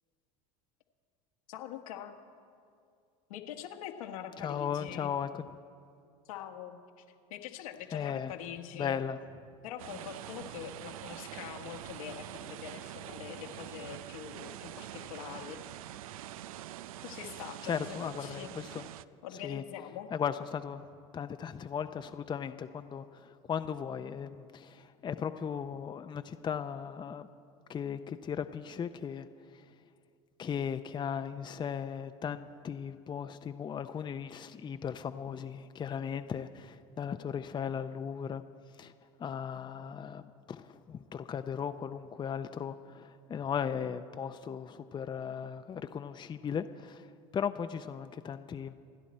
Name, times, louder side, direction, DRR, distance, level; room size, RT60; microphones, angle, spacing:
voice 1, 1.5-2.2 3.3-5.1 6.3-7.0 7.3-9.0 9.6-15.6 17.0-18.5 19.2-20.1, left 10 dB, 80° left, 3 dB, 1.5 m, -44 dB
voice 2, 4.4-5.5 7.9-8.3 8.7-9.2 17.6-18.9 19.4-19.6 20.1-20.9 21.1-27.3 27.7-29.3 29.5-29.7 30.4-38.4 38.8-38.9 39.2-48.7, left 7 dB, 25° left, 9 dB, 0.6 m, -37 dB
sound 1, 9.8-19.0, right 12 dB, 85° right, 0.4 m, -45 dB
28.0 x 10.5 x 4.3 m, 2.3 s
hypercardioid pair, 90°, 18 cm